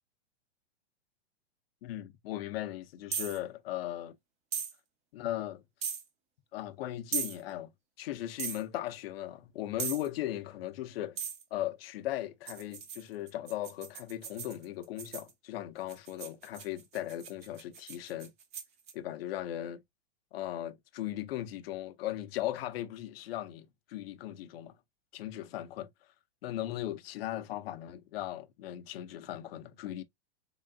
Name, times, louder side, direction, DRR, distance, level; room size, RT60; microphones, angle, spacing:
voice 1, 1.8-4.2 5.1-5.6 6.5-7.7 8.0-11.2 11.5-18.3 18.9-19.8 20.3-24.7 25.1-25.9 26.4-30.0, left 13 dB, 60° left, 0.7 m, -38 dB
sound 1, 3.1-3.4 4.5-4.7 5.8-6.0 7.1-7.4 8.4-8.6 9.8-10.1 11.2-11.4 12.5-15.3 15.9-18.9, right 7 dB, 20° right, 0.5 m, -38 dB
3.8 x 3.6 x 2.2 m
supercardioid pair, 150°, 33 cm